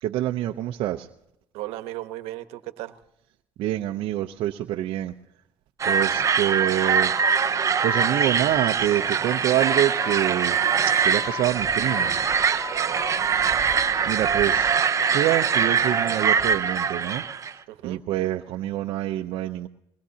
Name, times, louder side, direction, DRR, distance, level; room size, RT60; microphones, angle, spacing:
voice 1, 0.0-1.1 3.6-5.1 5.9-7.1 7.8-10.6 10.9-12.2 14.0-14.7 15.1-17.2 17.8-19.7, right 13 dB, 65° right, 3 dB, 0.7 m, -26 dB
voice 2, 1.5-2.9 12.7-13.3 17.7-18.0, right 16 dB, 85° right, 10 dB, 1.1 m, -36 dB
sound 1, 5.8-17.5, right 6 dB, 30° right, 0.7 m, -23 dB
sound 2, 6.1-8.6 8.9-11.5 11.9-14.4 14.8-17.4, left 4 dB, 15° left, 5.0 m, -40 dB
23.0 x 20.0 x 2.8 m, 0.82 s
cardioid pair, 110°, 10 cm